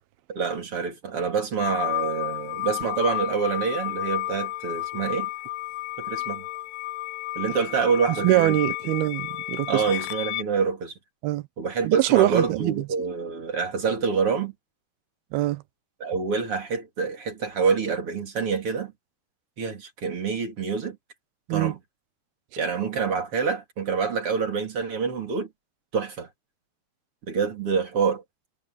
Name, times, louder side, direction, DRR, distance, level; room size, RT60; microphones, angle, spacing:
voice 1, 0.3-5.3 6.0-6.4 7.3-8.5 9.7-10.9 11.6-14.5 16.0-18.9 19.6-21.0 21.5-21.8 22.6-25.5 25.9-26.3 27.3-28.2, right 5 dB, 35° right, 3.4 m, -26 dB
sound 1, 1.6-10.4, left 16 dB, 80° left, 2.5 m, -32 dB
voice 2, 8.2-9.8 11.2-11.4 11.8-12.7 15.3-15.6 21.5-21.7, right 15 dB, 75° right, 2.7 m, -22 dB
omnidirectional pair, 4.8 m